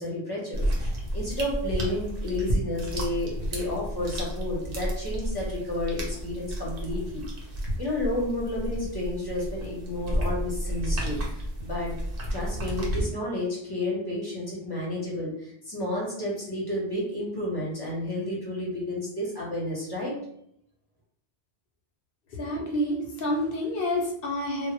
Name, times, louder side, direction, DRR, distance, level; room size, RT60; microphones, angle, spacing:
voice 1, 0.0-7.3 7.8-12.0 12.3-20.2, left 1 dB, 25° left, -5 dB, 0.7 m, -31 dB
sound 1, 0.5-13.0, equal, 60° right, 0.8 m, -31 dB
voice 2, 22.3-24.7, left 1 dB, 65° left, 0 dB, 0.7 m, -28 dB
2.1 x 2.0 x 2.8 m, 0.71 s
omnidirectional pair, 1.1 m